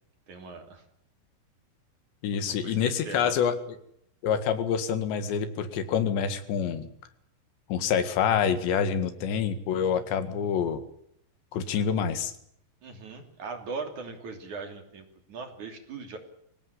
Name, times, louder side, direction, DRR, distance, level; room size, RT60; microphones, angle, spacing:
voice 1, 0.3-0.8 2.3-3.4 12.8-16.2, right 4 dB, 45° right, 6 dB, 4.1 m, -40 dB
voice 2, 2.2-3.6 4.2-6.9 7.7-10.8 11.5-12.3, left 7 dB, 85° left, 11 dB, 4.2 m, -27 dB
24.0 x 17.0 x 9.9 m, 0.71 s
omnidirectional pair, 5.0 m